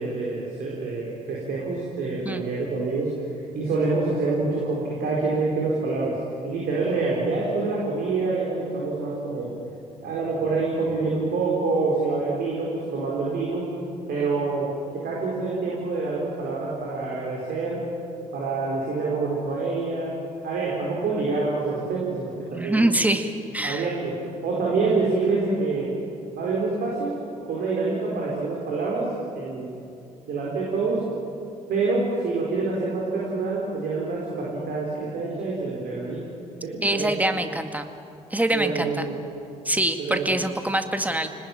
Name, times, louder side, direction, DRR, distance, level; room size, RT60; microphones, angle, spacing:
voice 1, 0.0-3.1 3.5-6.2 6.4-9.5 10.0-13.7 14.1-17.8 18.3-20.1 20.4-22.9 23.6-24.1 24.4-25.9 26.3-27.1 27.5-29.1 29.3-29.7 30.3-31.0 31.7-36.2 36.6-37.1 38.5-39.1 40.0-40.4, right 3 dB, 55° right, -4 dB, 4.7 m, -26 dB
voice 2, 22.5-23.9 36.8-37.9 38.3-39.1 39.7-41.3, right 1 dB, 10° right, 7 dB, 2.0 m, -24 dB
29.5 x 19.5 x 9.1 m, 2.6 s
figure-of-eight pair, 40°, 19 cm